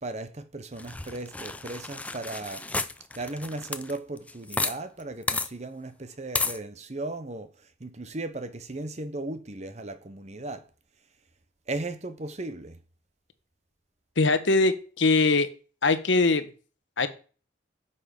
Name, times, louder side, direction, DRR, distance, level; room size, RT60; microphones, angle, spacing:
voice 1, 0.0-2.6 3.1-10.6 11.7-12.8, right 2 dB, 35° right, 0.9 m, -36 dB
sound 1, 0.8-4.7 5.0-5.1 5.3-5.5 6.3-6.6, left 3 dB, 5° left, 0.4 m, -31 dB
voice 2, 14.2-15.5 15.8-16.4 17.0-17.1, left 3 dB, 70° left, 1.1 m, -22 dB
9.6 x 7.0 x 5.2 m
head